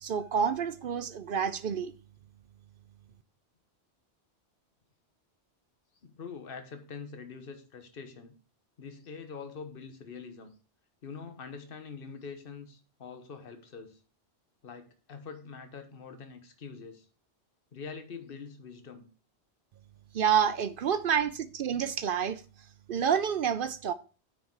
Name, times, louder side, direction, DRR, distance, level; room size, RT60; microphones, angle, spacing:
voice 1, 0.0-1.9 20.1-22.4 22.9-23.9, right 8 dB, 60° right, 0.7 m, -28 dB
voice 2, 6.0-8.3 8.8-10.5 11.0-14.0 14.6-17.1 17.7-19.1, left 5 dB, 55° left, 1.3 m, -44 dB
9.4 x 4.8 x 4.6 m
omnidirectional pair, 1.1 m